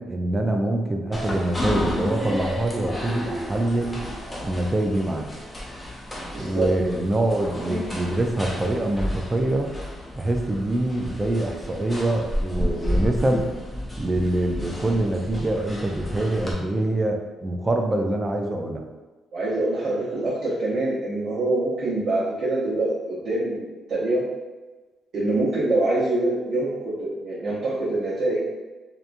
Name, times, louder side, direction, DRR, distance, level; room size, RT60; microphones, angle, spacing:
voice 1, 0.0-4.0 4.4-5.3 6.4-9.7 10.2-13.5 14.0-18.8, right 1 dB, 25° right, 3 dB, 0.4 m, -25 dB
sound 1, 1.1-16.5, left 1 dB, 15° left, 0.6 m, -31 dB
voice 2, 6.3-6.7 19.3-24.2 25.1-28.4, right 2 dB, 60° right, -10 dB, 0.8 m, -25 dB
2.8 x 2.2 x 2.5 m, 1.2 s
cardioid pair, 90°, 0 cm